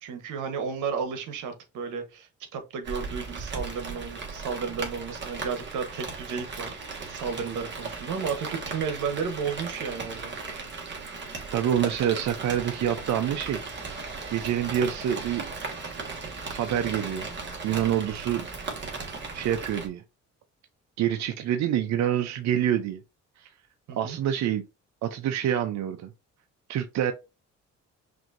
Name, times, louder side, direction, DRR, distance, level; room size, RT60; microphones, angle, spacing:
voice 1, 0.0-6.7 7.1-10.3 23.9-24.2, right 6 dB, 85° right, 1.1 m, -33 dB
Rain, 2.9-19.9, right 4 dB, 40° right, 1.6 m, -37 dB
voice 2, 11.5-13.9 14.3-15.5 16.5-17.3 17.6-18.5 18.9-19.0 19.3-20.0 21.0-23.0 23.4-23.5 24.0-24.6 25.0-26.1 26.7-27.1, right 10 dB, 65° right, 0.5 m, -27 dB
5.9 x 2.6 x 2.5 m
cardioid pair, 90°, 30 cm